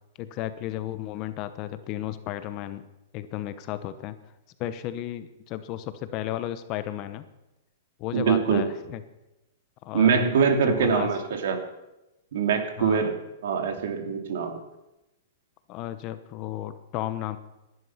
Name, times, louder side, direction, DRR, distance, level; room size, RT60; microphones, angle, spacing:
voice 1, 0.2-2.9 3.1-4.2 4.6-7.2 8.0-9.0 9.8-10.4 10.6-11.1 12.8-13.1 15.7-17.4, left 13 dB, 35° left, 12 dB, 0.9 m, -33 dB
voice 2, 8.1-8.7 9.9-11.6 12.3-13.1 13.4-14.5, right 6 dB, 70° right, 5 dB, 2.7 m, -23 dB
16.5 x 11.0 x 5.8 m, 0.96 s
hypercardioid pair, 155°, 0 cm